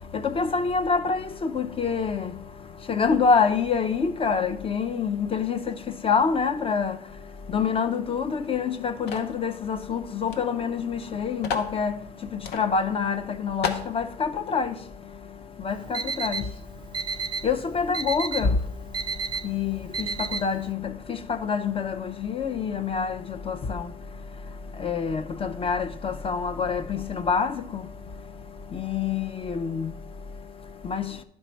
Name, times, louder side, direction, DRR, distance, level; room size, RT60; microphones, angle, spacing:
voice 1, 0.1-2.4 2.9-7.0 7.5-12.0 12.3-14.8 15.6-16.5 17.4-18.6 19.4-23.9 24.7-27.9 28.7-29.9 30.8-31.2, left 5 dB, 35° left, 0.5 m, -26 dB
sound 1, 9.1-9.4 10.3-10.4 10.7-10.8 11.4-11.7 12.4-12.6 13.1-13.2 13.6-13.9, left 6 dB, 85° left, 0.8 m, -31 dB
Alarm, 15.7-20.7, right 4 dB, 30° right, 0.4 m, -32 dB
10.5 x 4.3 x 4.4 m
cardioid pair, 110°, 17 cm